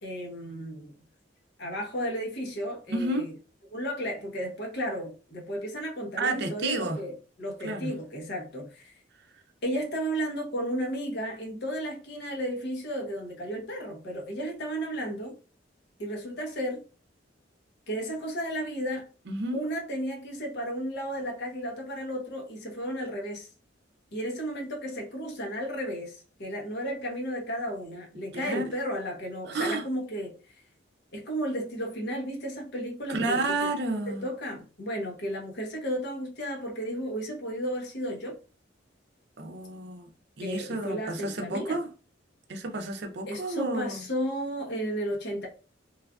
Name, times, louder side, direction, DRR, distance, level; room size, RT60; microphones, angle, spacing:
voice 1, 0.0-0.9 1.6-3.3 3.7-7.1 7.4-9.0 9.6-15.4 16.0-16.8 17.9-19.1 19.5-23.5 24.1-30.3 31.1-33.7 34.1-38.4 40.4-41.8 43.3-45.5, equal, 65° left, 0.8 m, -33 dB
voice 2, 2.9-3.3 6.2-7.0 7.6-7.9 19.3-19.6 28.3-28.7 29.5-29.8 33.1-34.3 39.4-40.1 40.4-41.9 42.5-44.0, right 2 dB, 60° right, 0.5 m, -31 dB
3.2 x 2.4 x 2.3 m
head